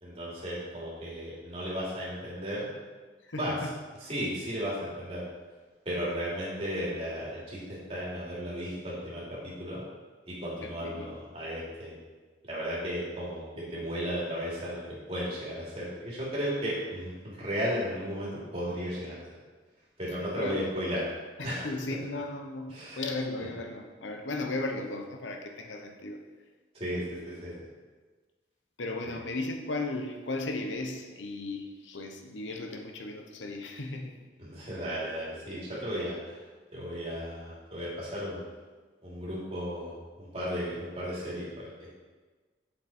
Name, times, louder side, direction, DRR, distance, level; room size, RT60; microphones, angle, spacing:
voice 1, 0.0-2.7 3.3-3.7 4.0-5.2 5.8-9.8 10.3-12.0 12.4-14.8 15.1-19.3 20.0-21.0 21.4-21.7 22.7-23.0 26.7-27.5 29.0-29.2 34.4-36.4 36.7-38.4 39.0-42.0, equal, 30° right, -7 dB, 3.0 m, -35 dB
voice 2, 3.3-3.7 10.6-11.1 13.5-13.8 20.4-20.6 21.4-26.2 28.8-34.2, left 2 dB, 85° left, 3 dB, 1.0 m, -36 dB
8.0 x 7.3 x 4.4 m, 1.4 s
head